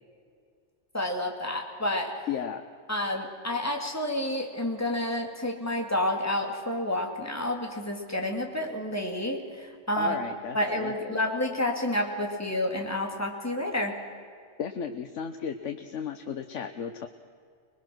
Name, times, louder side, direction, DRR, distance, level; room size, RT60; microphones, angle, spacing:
voice 1, 0.9-2.1 2.9-10.1 10.5-13.9, left 1 dB, 15° left, 2 dB, 2.5 m, -29 dB
voice 2, 2.3-2.6 10.0-11.2 14.6-17.1, left 7 dB, 85° left, 6 dB, 1.2 m, -34 dB
25.5 x 20.5 x 6.3 m, 2.3 s
omnidirectional pair, 1.2 m